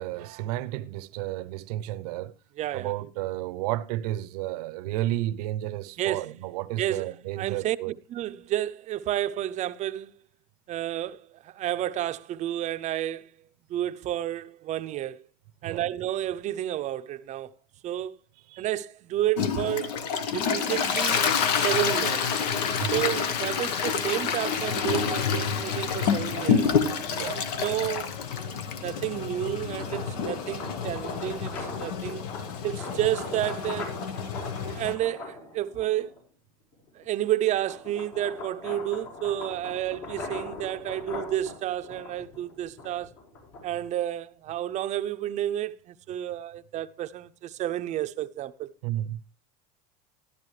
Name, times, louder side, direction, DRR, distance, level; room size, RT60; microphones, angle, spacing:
voice 1, 0.0-2.3 2.7-7.9 15.6-15.8 18.5-18.7 22.8-23.1 27.1-27.4 48.8-49.2, right 14 dB, 75° right, 0.7 m, -32 dB
voice 2, 2.6-2.9 6.0-6.3 6.8-7.1 7.4-10.1 10.7-13.3 13.7-15.3 15.6-17.5 17.8-18.2 18.6-20.0 20.3-22.3 22.9-26.7 27.3-28.1 28.4-32.2 32.6-33.9 34.4-36.1 36.9-43.1 43.6-48.7, right 12 dB, 35° right, 0.5 m, -31 dB
Toilet flush, 19.4-34.9, left 6 dB, 85° left, 1.2 m, -28 dB
sound 1, 29.6-36.2 36.7-43.9, left 3 dB, 65° left, 5.2 m, -40 dB
12.5 x 11.5 x 3.2 m
supercardioid pair, 125°, 20 cm